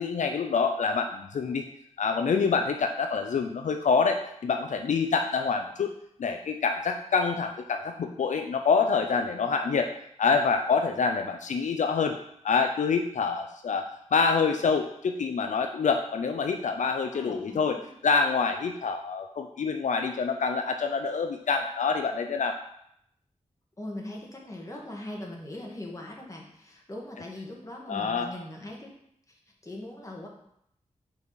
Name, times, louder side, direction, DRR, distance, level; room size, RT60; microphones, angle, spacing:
voice 1, 0.0-1.6 2.0-5.9 6.2-9.9 10.2-12.2 12.4-17.8 18.0-22.6 27.9-28.3, left 5 dB, 80° left, 5 dB, 0.4 m, -26 dB
voice 2, 17.1-17.9 23.8-28.9 29.3-30.3, left 1 dB, 25° left, -1 dB, 1.5 m, -41 dB
5.4 x 4.1 x 4.7 m, 0.73 s
wide cardioid pair, 75°, 12 cm